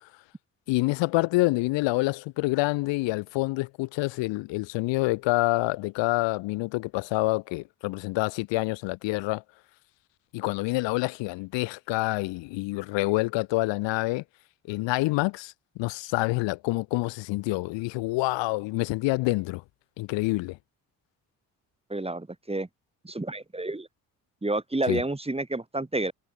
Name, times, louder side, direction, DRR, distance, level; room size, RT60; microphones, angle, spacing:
voice 1, 0.7-9.4 10.3-14.2 14.7-19.6 20.0-20.6 24.9-25.0, left 22 dB, 80° left, 2.7 m, -27 dB
voice 2, 21.9-22.7 23.0-23.9 24.4-26.1, right 2 dB, 15° right, 2.8 m, -30 dB
hypercardioid pair, 50°, 43 cm